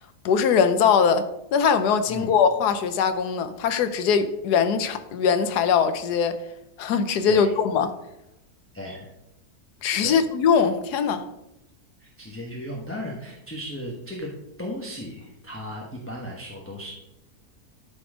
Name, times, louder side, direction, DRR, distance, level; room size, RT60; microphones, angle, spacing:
voice 1, 0.2-6.4 6.8-7.9 9.8-11.2, left 6 dB, 85° left, 1.3 m, -21 dB
voice 2, 8.7-9.1 10.0-10.2 12.0-14.3 14.6-16.9, equal, 10° left, 1.1 m, -35 dB
12.5 x 4.3 x 5.0 m
omnidirectional pair, 1.7 m